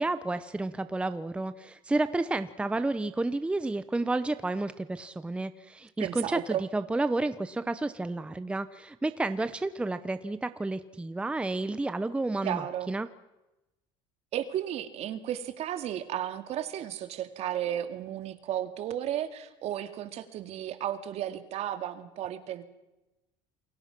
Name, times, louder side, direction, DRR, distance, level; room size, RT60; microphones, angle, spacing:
voice 1, 0.0-13.1, right 2 dB, 10° right, 12 dB, 0.8 m, -31 dB
voice 2, 6.0-6.6 12.4-12.9 14.3-22.6, right 11 dB, 55° right, 9 dB, 2.3 m, -34 dB
29.0 x 22.0 x 6.0 m, 1.0 s
cardioid pair, 125°, 13 cm